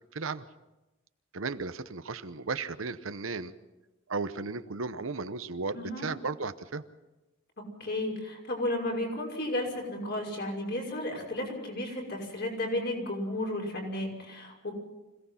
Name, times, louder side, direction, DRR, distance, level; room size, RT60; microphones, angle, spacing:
voice 1, 0.1-0.4 1.3-3.5 4.1-6.8, right 4 dB, 70° right, 12 dB, 0.9 m, -35 dB
voice 2, 5.7-6.1 7.8-14.7, left 1 dB, 55° left, 0 dB, 5.9 m, -33 dB
26.0 x 17.5 x 5.8 m, 1.0 s
head